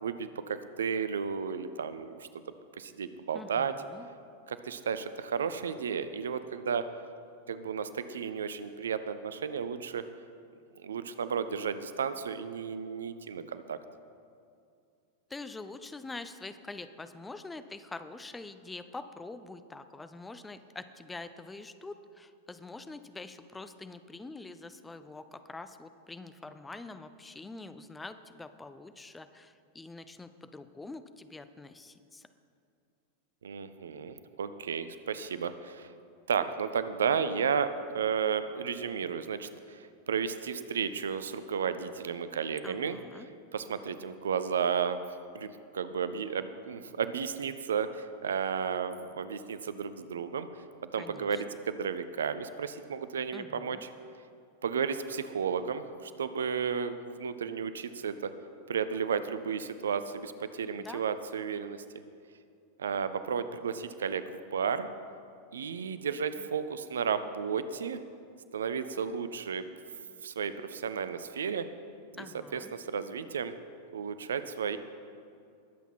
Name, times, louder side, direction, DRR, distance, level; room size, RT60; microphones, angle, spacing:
voice 1, 0.0-2.3 2.8-3.7 4.5-6.9 7.5-10.0 10.8-13.8 33.4-35.9 36.3-43.0 43.5-45.0 45.3-50.5 50.9-53.9 54.6-58.3 58.7-61.8 62.8-64.9 65.5-68.0 68.5-69.7 70.2-71.7 72.1-72.3 72.5-73.5 73.9-74.8, right 6 dB, 65° right, 12 dB, 0.6 m, -33 dB
voice 2, 3.3-4.1 15.3-32.3 42.6-43.3 51.0-51.4 53.3-53.9 60.7-61.0 72.2-72.7, left 3 dB, 10° left, 11 dB, 0.6 m, -45 dB
21.0 x 8.1 x 4.4 m, 2.4 s
figure-of-eight pair, 90°, 0 cm